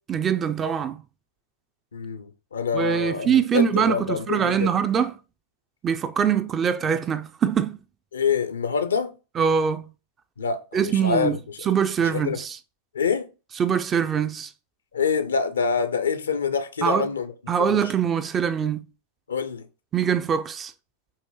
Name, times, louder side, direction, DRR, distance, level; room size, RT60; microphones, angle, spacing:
voice 1, 0.1-1.0 2.7-5.1 5.8-7.8 9.4-9.9 10.7-11.4 11.7-12.6 13.6-14.5 16.8-17.1 17.5-18.8 19.9-20.7, right 7 dB, 25° right, 0.3 m, -23 dB
voice 2, 1.9-4.7 8.1-9.1 10.4-11.7 12.0-12.4 12.9-13.3 14.9-17.3 17.6-17.8 19.3-19.7, left 6 dB, 70° left, 0.4 m, -26 dB
5.5 x 2.5 x 3.0 m
figure-of-eight pair, 90°, 0 cm